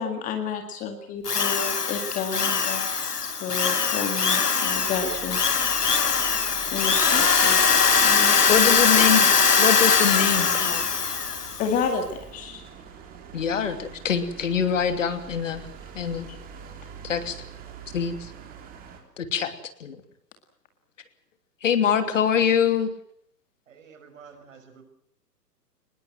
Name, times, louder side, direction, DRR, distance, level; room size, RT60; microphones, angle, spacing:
voice 1, 0.0-5.4 6.7-7.6 8.0-9.3 11.6-12.6, left 6 dB, 15° left, 6 dB, 2.0 m, -31 dB
Drill, 1.3-11.7, left 5 dB, 70° left, 1.7 m, -21 dB
sound 1, 4.6-19.0, right 7 dB, 15° right, 3.4 m, -44 dB
voice 2, 8.5-9.2 9.6-10.8 13.3-15.6 15.9-16.3 17.0-17.4 17.9-18.3 19.2-19.5 19.8-20.0 21.6-22.9, left 7 dB, 50° left, 9 dB, 2.9 m, -24 dB
voice 3, 23.7-24.8, right 6 dB, 50° right, 8 dB, 5.8 m, -49 dB
24.5 x 21.0 x 7.7 m, 0.63 s
figure-of-eight pair, 125°, 49 cm